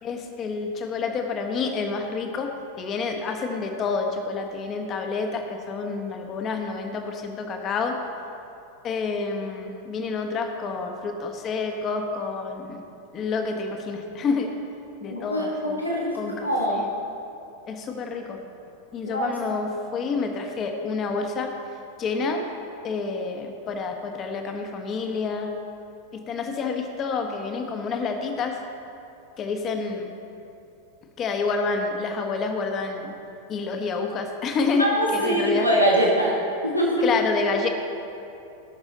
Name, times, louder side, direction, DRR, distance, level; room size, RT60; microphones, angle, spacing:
voice 1, 0.0-8.0 8.8-12.8 13.1-14.5 15.0-15.8 16.1-16.9 17.7-18.4 18.9-21.5 22.0-22.4 22.8-25.5 26.1-28.6 29.4-30.1 31.2-33.1 33.5-35.7 37.0-37.7, left 4 dB, 30° left, 4 dB, 1.2 m, -28 dB
voice 2, 15.1-16.2 16.4-16.8 19.0-19.3 34.8-36.3 36.6-37.1, equal, 90° left, -4 dB, 1.3 m, -23 dB
18.5 x 6.3 x 3.9 m, 2.7 s
figure-of-eight pair, 90°, 0 cm